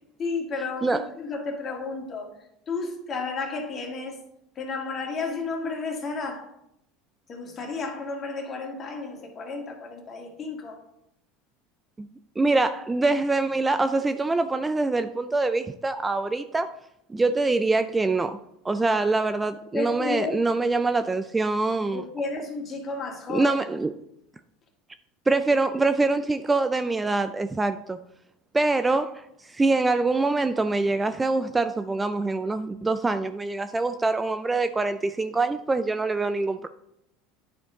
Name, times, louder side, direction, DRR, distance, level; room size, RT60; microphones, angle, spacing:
voice 1, 0.2-2.3 2.7-4.2 4.6-6.5 7.3-10.8 19.7-20.4 21.9-23.5, left 4 dB, 35° left, 2.0 m, -32 dB
voice 2, 12.4-16.7 17.1-18.4 18.6-22.0 23.3-23.9 25.3-28.0 28.5-36.7, right 3 dB, 15° right, 0.3 m, -24 dB
10.0 x 4.5 x 3.8 m
supercardioid pair, 105°, 0 cm